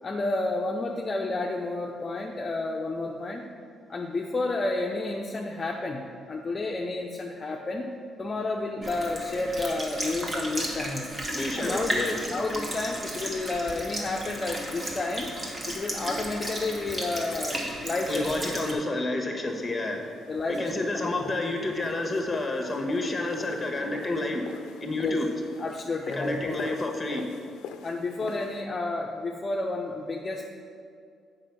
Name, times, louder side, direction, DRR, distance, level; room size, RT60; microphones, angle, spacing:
voice 1, 0.0-3.5 3.9-7.9 8.2-11.1 11.6-15.3 15.7-18.3 18.6-18.8 20.3-21.3 25.0-26.4 27.8-30.5, left 2 dB, 35° left, 0 dB, 0.6 m, -31 dB
Sink (filling or washing) / Liquid, 8.8-18.7, right 1 dB, 30° right, 1.5 m, -34 dB
voice 2, 11.3-12.2 18.1-20.1 20.5-24.5 24.8-25.3 26.1-27.3, left 2 dB, 15° left, 3 dB, 1.3 m, -29 dB
sound 1, 19.5-28.6, left 7 dB, 90° left, 0.4 m, -45 dB
7.7 x 5.4 x 5.9 m, 2.3 s
cardioid pair, 90°, 0 cm